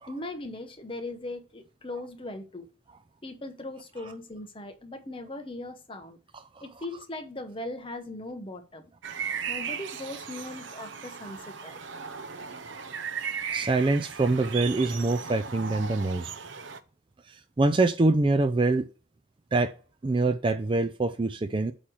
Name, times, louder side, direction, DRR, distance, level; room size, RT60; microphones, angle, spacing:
voice 1, 0.1-2.7 3.2-6.2 6.6-8.8 9.5-11.8, left 2 dB, 25° left, 0.9 m, -39 dB
sound 1, 9.0-16.8, right 7 dB, 65° right, 0.6 m, -36 dB
voice 2, 13.5-16.3 17.6-18.9 19.5-19.7 20.0-21.7, right 2 dB, 25° right, 0.4 m, -24 dB
8.3 x 3.1 x 6.2 m
head